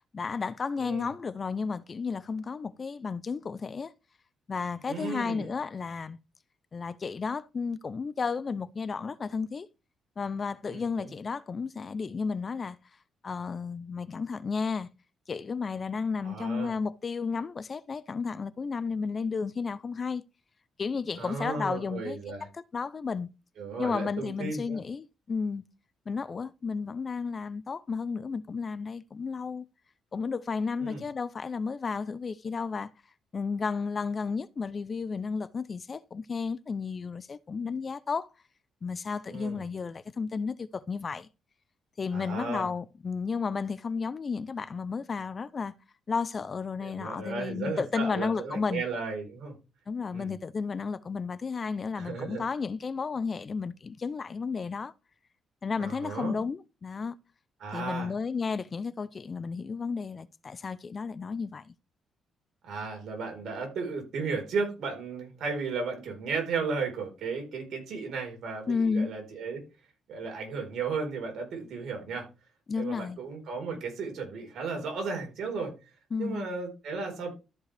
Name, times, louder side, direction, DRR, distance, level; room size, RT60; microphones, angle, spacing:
voice 1, 0.1-3.9 4.5-6.2 6.7-9.7 10.2-12.8 13.2-14.9 15.3-20.2 20.8-23.3 23.8-25.6 26.1-29.6 30.1-32.9 33.3-38.3 38.8-41.3 42.0-45.7 46.1-48.8 49.9-54.9 55.6-57.1 57.7-61.7 68.7-69.1 72.7-73.2 76.1-76.5, left 5 dB, 40° left, 0.5 m, -33 dB
voice 2, 0.8-1.1 4.9-5.5 10.7-11.1 16.2-16.7 21.2-22.4 23.6-24.8 30.8-31.0 39.3-39.6 42.1-42.7 46.8-49.5 50.1-50.3 51.9-52.4 55.8-56.4 57.6-58.1 62.6-69.6 70.1-72.3 72.8-75.7 76.2-77.3, right 4 dB, 70° right, 4.3 m, -34 dB
13.5 x 5.4 x 3.4 m
cardioid pair, 90°, 0 cm